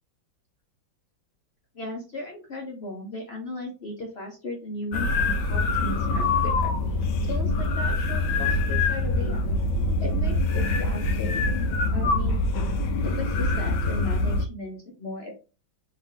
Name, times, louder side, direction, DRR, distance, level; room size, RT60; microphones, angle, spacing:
voice 1, 1.7-7.0 7.3-9.6 10.0-12.5 13.0-15.4, left 1 dB, 55° left, 0 dB, 0.7 m, -36 dB
sound 1, 4.9-14.5, left 2 dB, 85° left, 1.4 m, -24 dB
4.7 x 2.7 x 3.8 m, 0.32 s
omnidirectional pair, 2.1 m